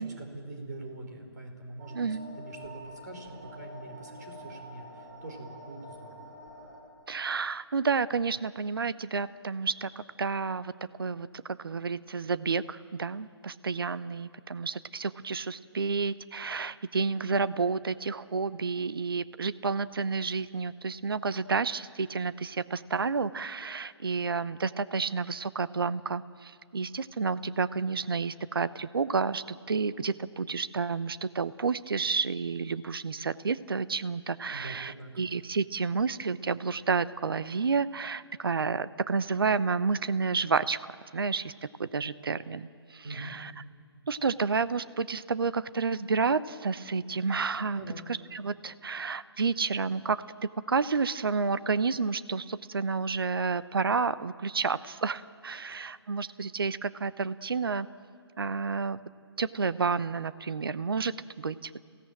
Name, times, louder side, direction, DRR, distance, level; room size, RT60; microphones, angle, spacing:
voice 1, 0.0-6.3 34.5-35.1 43.0-43.4 47.7-48.1 55.7-55.9, right 2 dB, 40° right, 3 dB, 4.9 m, -44 dB
sound 1, 1.8-6.8, equal, 25° right, 7.3 m, -47 dB
voice 2, 1.9-2.4 7.1-10.7 11.0-11.3 11.6-40.8 41.1-41.5 41.8-43.5 44.1-47.8 48.3-57.9 58.4-59.0 59.4-61.9, right 4 dB, 60° right, 15 dB, 0.8 m, -30 dB
28.0 x 17.0 x 8.9 m, 2.4 s
figure-of-eight pair, 140°, 14 cm